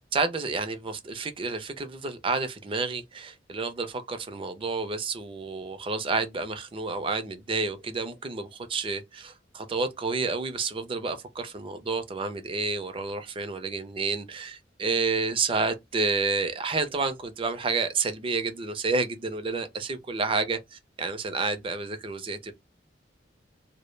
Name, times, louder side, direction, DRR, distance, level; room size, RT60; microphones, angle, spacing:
voice 1, 0.1-22.5, right 4 dB, 30° right, 0.4 m, -30 dB
2.1 x 2.0 x 3.1 m
head